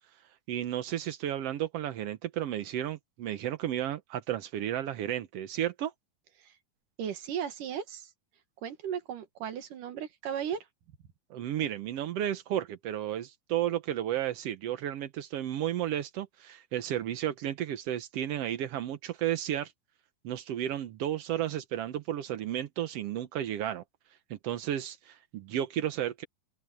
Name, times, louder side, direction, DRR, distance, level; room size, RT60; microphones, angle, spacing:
voice 1, 0.5-5.9 11.3-19.7 20.2-23.8 24.3-26.2, right 11 dB, 85° right, 1.3 m, -33 dB
voice 2, 7.0-8.1 8.6-10.6, right 9 dB, 70° right, 3.0 m, -36 dB
open air
omnidirectional pair, 4.1 m